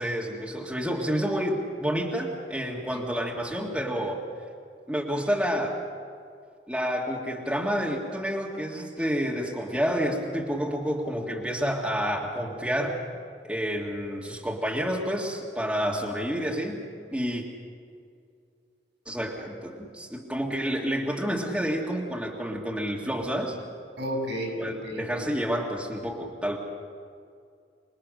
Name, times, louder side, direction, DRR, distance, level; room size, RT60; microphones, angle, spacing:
voice 1, 0.0-4.2 4.9-5.8 6.7-13.0 13.4-16.8 17.1-17.4 19.1-23.6 24.5-26.6, equal, 5° right, -2 dB, 1.7 m, -29 dB
voice 2, 24.0-25.3, equal, 80° right, 2 dB, 6.1 m, -32 dB
25.5 x 20.5 x 6.5 m, 2.3 s
head